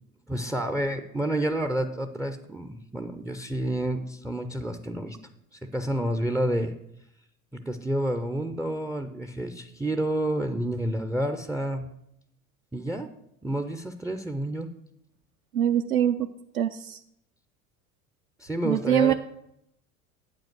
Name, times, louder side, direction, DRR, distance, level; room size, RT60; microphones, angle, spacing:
voice 1, 0.3-5.2 5.6-6.7 7.5-11.8 12.7-13.1 13.4-14.7 18.4-19.1, right 1 dB, 5° right, 9 dB, 0.3 m, -29 dB
voice 2, 15.5-16.3 16.5-17.0 18.6-19.1, right 10 dB, 80° right, 7 dB, 0.5 m, -23 dB
8.7 x 5.3 x 7.8 m, 0.78 s
figure-of-eight pair, 70°, 42 cm